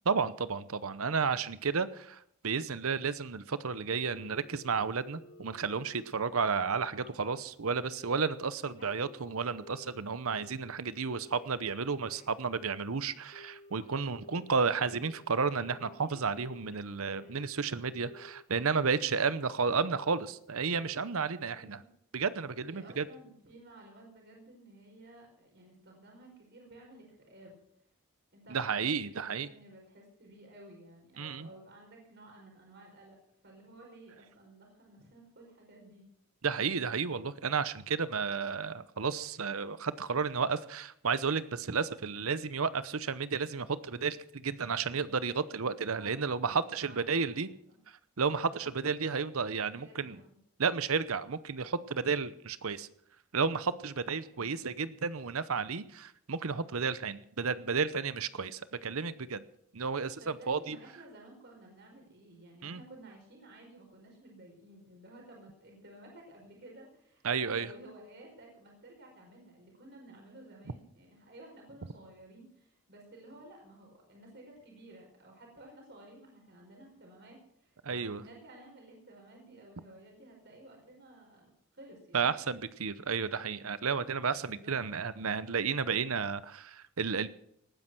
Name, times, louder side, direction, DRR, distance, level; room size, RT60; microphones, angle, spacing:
voice 1, 0.1-21.8 22.1-23.1 28.5-29.5 31.2-31.5 36.4-47.5 48.2-50.2 50.6-52.9 53.3-59.4 59.7-60.8 62.6-62.8 67.2-67.7 77.8-78.2 82.1-87.3, right 5 dB, 70° right, 15 dB, 0.8 m, -32 dB
Telephone, 4.1-7.4 8.0-8.4 8.7-10.0 10.3-10.7 11.1-14.5 14.8-15.2 15.5-17.6 17.9-18.8 19.1-19.5 19.9-20.3 20.6-21.0 21.4-21.5, left 2 dB, 35° left, 1.3 m, -54 dB
voice 2, 14.0-14.5 21.4-21.9 22.6-27.6 28.3-33.2 33.4-36.0 46.0-46.2 46.7-47.8 48.5-48.7 49.7-50.4 54.3-54.8 60.2-82.4 84.3-85.1 85.4-85.6, right 1 dB, 50° right, 1 dB, 4.9 m, -54 dB
19.0 x 10.0 x 6.1 m, 0.71 s
head